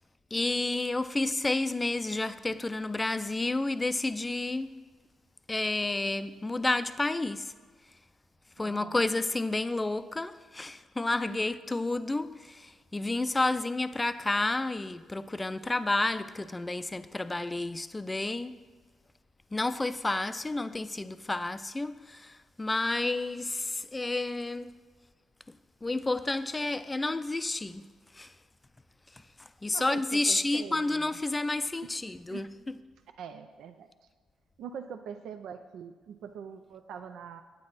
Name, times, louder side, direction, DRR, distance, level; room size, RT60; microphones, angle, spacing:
voice 1, 0.3-4.8 5.5-7.5 8.6-18.6 19.5-24.8 25.8-28.3 29.4-32.8, left 2 dB, 15° left, 0.4 m, -30 dB
voice 2, 8.6-9.0 11.3-11.4 29.6-31.2 31.8-31.9 32.3-32.5 33.2-33.9 34.6-37.4, right 7 dB, 75° right, 0.4 m, -43 dB
9.5 x 8.7 x 4.0 m
cardioid pair, 90°, 0 cm